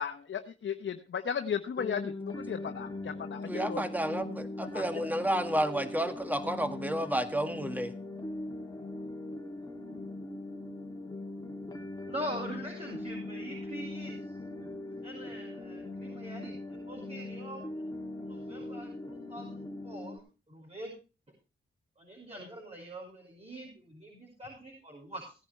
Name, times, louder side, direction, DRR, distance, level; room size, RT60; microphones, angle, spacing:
voice 1, 0.0-3.8 4.7-4.8, left 7 dB, 75° left, 6 dB, 1.0 m, -35 dB
sound 1, 1.8-20.2, left 2 dB, 20° left, 2.9 m, -40 dB
voice 2, 3.5-7.9, right 1 dB, 10° right, 8 dB, 1.8 m, -31 dB
voice 3, 12.1-14.2 15.0-17.9 18.2-20.9 22.0-25.3, equal, 30° right, -1 dB, 5.8 m, -43 dB
17.5 x 10.5 x 3.2 m, 0.32 s
cardioid pair, 60°, 20 cm